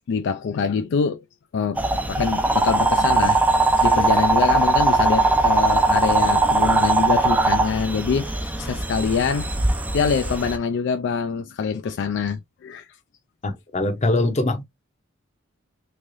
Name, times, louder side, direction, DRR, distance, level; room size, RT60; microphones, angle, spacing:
voice 1, 0.1-1.2 1.5-1.8 2.1-9.6 9.9-12.9, left 5 dB, 60° left, 0.3 m, -25 dB
sound 1, 1.8-10.6, right 2 dB, 10° right, 0.4 m, -20 dB
voice 2, 13.4-14.6, left 2 dB, 35° left, 0.7 m, -22 dB
3.6 x 3.2 x 2.5 m
head